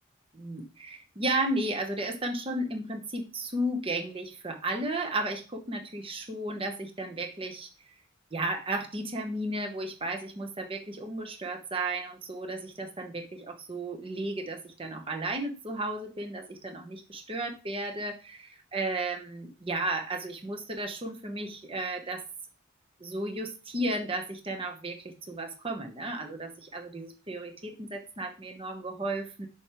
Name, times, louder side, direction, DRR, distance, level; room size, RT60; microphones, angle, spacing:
voice 1, 0.3-7.7 8.3-22.2 23.0-29.5, right 1 dB, 30° right, 4 dB, 1.0 m, -34 dB
6.4 x 4.8 x 4.3 m, 0.34 s
head